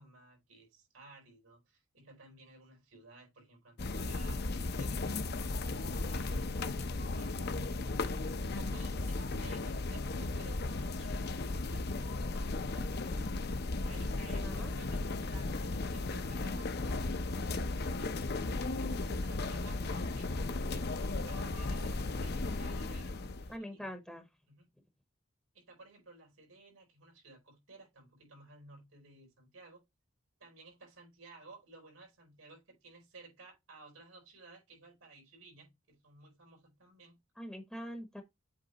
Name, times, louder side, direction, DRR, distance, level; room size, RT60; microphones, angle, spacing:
voice 1, 0.0-5.5 5.7-8.1 8.6-13.0 13.9-17.6 18.4-23.9 24.5-24.7 25.5-29.8 30.4-37.2, right 3 dB, 85° right, 4.3 m, -56 dB
sound 1, 3.8-23.5, left 2 dB, 50° left, 0.6 m, -35 dB
voice 2, 23.5-24.2 37.4-38.2, equal, ahead, 0.8 m, -43 dB
8.0 x 3.3 x 3.9 m
head